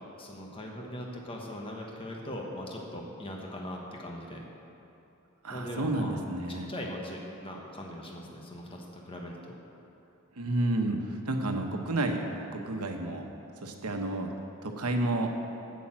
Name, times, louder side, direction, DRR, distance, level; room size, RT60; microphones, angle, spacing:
voice 1, 0.2-4.4 5.5-6.2 6.5-9.6, left 1 dB, 25° left, -1 dB, 1.3 m, -40 dB
voice 2, 5.4-6.7 10.4-13.3 13.6-14.3 14.6-15.3, right 2 dB, 85° right, 4 dB, 1.1 m, -30 dB
8.5 x 8.4 x 7.5 m, 3.0 s
head